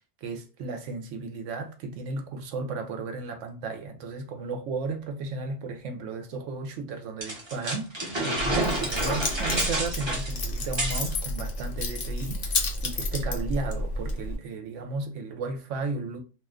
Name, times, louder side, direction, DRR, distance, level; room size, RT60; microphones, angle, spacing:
voice 1, 0.2-16.2, right 3 dB, 80° right, 0.9 m, -34 dB
sound 1, 7.2-11.1, right 1 dB, 25° right, 0.7 m, -29 dB
Keys jangling, 8.4-14.4, left 2 dB, 60° left, 0.9 m, -31 dB
2.5 x 2.2 x 3.5 m
omnidirectional pair, 1.3 m